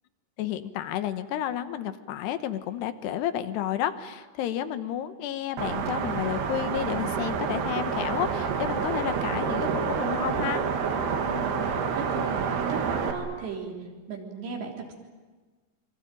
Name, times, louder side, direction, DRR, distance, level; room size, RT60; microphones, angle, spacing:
voice 1, 0.4-10.6, left 11 dB, 80° left, 10 dB, 3.2 m, -31 dB
sound 1, 5.6-13.1, right 6 dB, 70° right, 4.0 m, -28 dB
voice 2, 11.3-13.7 14.1-14.9, right 5 dB, 90° right, 1 dB, 5.8 m, -36 dB
27.0 x 24.0 x 9.1 m, 1.4 s
omnidirectional pair, 4.8 m